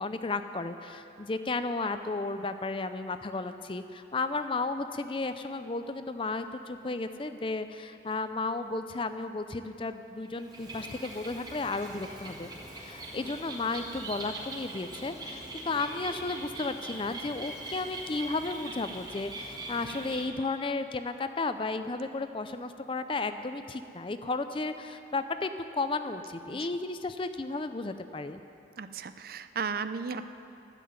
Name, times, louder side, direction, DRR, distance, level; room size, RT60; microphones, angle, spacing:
voice 1, 0.0-28.4, left 3 dB, 30° left, 10 dB, 0.4 m, -33 dB
Bird, 10.2-20.3, right 2 dB, 20° right, 1.6 m, -42 dB
voice 2, 28.8-30.3, right 5 dB, 50° right, 11 dB, 0.4 m, -35 dB
12.0 x 7.6 x 9.5 m, 2.8 s
head